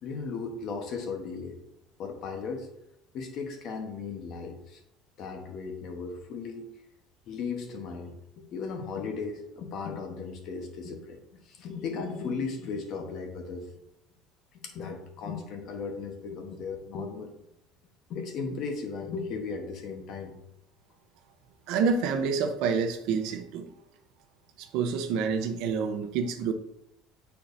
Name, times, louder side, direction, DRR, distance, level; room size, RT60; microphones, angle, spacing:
voice 1, 0.0-1.6 2.0-2.7 3.1-4.8 5.2-6.7 7.3-13.7 14.5-17.3 18.1-20.3, left 5 dB, 50° left, 4 dB, 1.1 m, -36 dB
voice 2, 21.7-23.7 24.6-26.5, right 5 dB, 65° right, 8 dB, 0.7 m, -28 dB
8.5 x 4.5 x 2.7 m, 0.81 s
cardioid pair, 145°, 0 cm